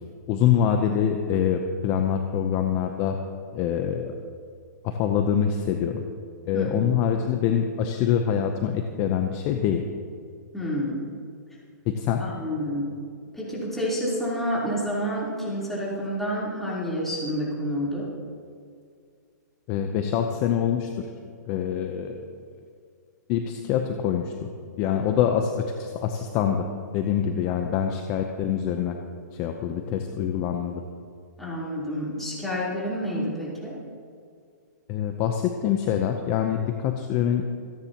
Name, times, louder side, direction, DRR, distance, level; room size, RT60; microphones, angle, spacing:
voice 1, 0.3-3.2 3.5-4.2 4.8-6.0 6.5-9.8 11.9-12.3 19.7-21.1 21.5-22.2 23.3-24.5 24.8-26.7 26.9-29.0 29.3-30.8 34.9-37.5, left 8 dB, 25° left, 5 dB, 0.7 m, -25 dB
voice 2, 6.5-6.9 10.5-11.1 12.2-12.9 13.3-18.1 31.4-33.8, equal, 5° left, -8 dB, 3.6 m, -29 dB
27.5 x 10.0 x 3.0 m, 2.2 s
hypercardioid pair, 155°, 10 cm